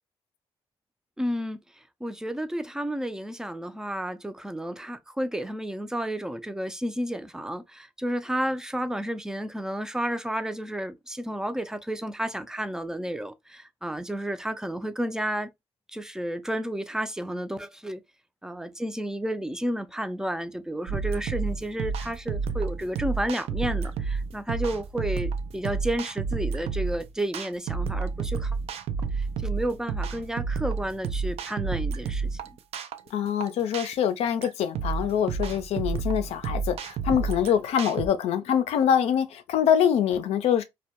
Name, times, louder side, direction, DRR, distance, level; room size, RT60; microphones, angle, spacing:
voice 1, 1.2-1.6 2.0-15.5 15.9-18.0 18.4-28.5 29.2-32.4, right 1 dB, 5° right, 0.4 m, -31 dB
sound 1, 20.9-38.1, right 5 dB, 75° right, 0.4 m, -30 dB
voice 2, 33.1-40.6, left 9 dB, 80° left, 0.5 m, -24 dB
2.2 x 2.1 x 2.7 m
cardioid pair, 75°, 11 cm